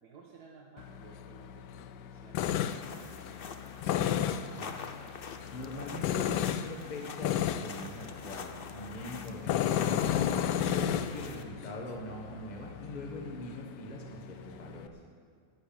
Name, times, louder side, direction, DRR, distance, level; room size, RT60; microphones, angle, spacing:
voice 1, 0.0-3.1, right 4 dB, 70° right, -2 dB, 1.8 m, -56 dB
Tools, 0.8-14.9, left 10 dB, 85° left, 1.2 m, -34 dB
sound 1, 2.4-11.4, left 5 dB, 50° left, 0.7 m, -45 dB
voice 2, 4.5-4.9 5.5-10.3 10.7-15.0, left 1 dB, 25° left, -1 dB, 1.6 m, -42 dB
11.5 x 10.0 x 8.9 m, 2.1 s
omnidirectional pair, 1.8 m